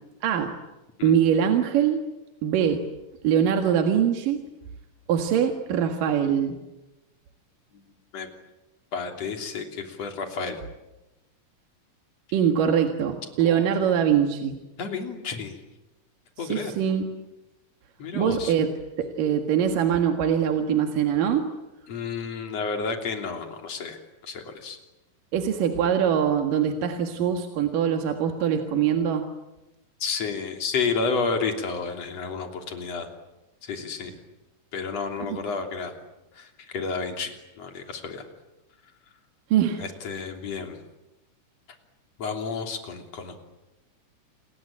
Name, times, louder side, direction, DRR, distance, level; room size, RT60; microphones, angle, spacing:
voice 1, 0.2-0.6 1.0-2.0 2.4-2.8 3.2-4.4 5.1-6.6 12.3-14.6 16.4-17.1 18.1-18.7 19.0-21.5 25.3-29.3 35.3-35.4 39.5-39.8, right 8 dB, 75° right, 5 dB, 3.3 m, -23 dB
voice 2, 8.9-10.6 13.4-13.6 14.8-15.6 16.4-16.7 18.0-18.5 21.9-24.8 30.0-33.1 33.6-34.1 34.7-35.9 36.4-38.2 39.8-40.8 42.2-43.4, left 5 dB, 50° left, 4 dB, 4.1 m, -31 dB
29.0 x 22.5 x 8.9 m, 1.0 s
omnidirectional pair, 3.9 m